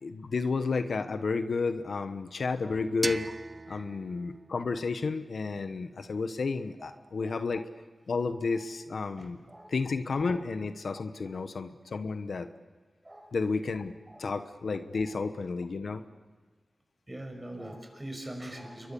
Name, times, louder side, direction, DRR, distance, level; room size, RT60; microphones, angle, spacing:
voice 1, 0.0-3.3 3.7-7.6 8.1-9.4 9.7-12.5 13.3-13.9 14.2-16.0, left 4 dB, 80° left, 10 dB, 1.1 m, -31 dB
sound 1, 3.0-5.9, right 2 dB, 45° right, 0.8 m, -40 dB
voice 2, 9.2-9.7 13.0-13.3 14.1-14.2 17.1-18.9, right 1 dB, 20° right, 4 dB, 6.1 m, -42 dB
28.5 x 23.0 x 7.1 m, 1.4 s
cardioid pair, 50°, 0 cm